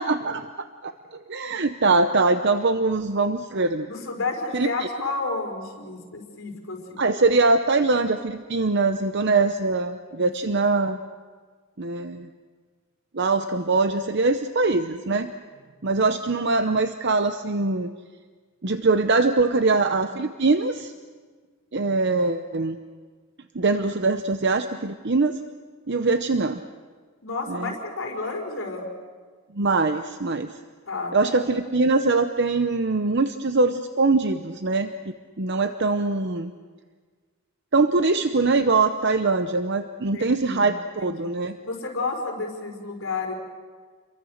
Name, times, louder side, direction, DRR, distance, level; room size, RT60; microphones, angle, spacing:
voice 1, 0.0-3.9 4.5-4.9 7.0-11.0 11.8-12.3 13.1-15.3 15.8-17.9 18.6-20.9 21.7-22.8 23.5-25.4 25.9-26.6 27.5-27.7 29.5-30.5 31.1-36.5 37.7-41.6, right 3 dB, 50° right, 8 dB, 0.8 m, -23 dB
voice 2, 3.8-7.0 10.1-10.3 27.2-28.8 30.9-31.4 40.1-40.7 41.0-41.3 41.6-43.3, left 3 dB, 60° left, 1 dB, 5.0 m, -31 dB
29.5 x 23.5 x 6.5 m, 1.5 s
head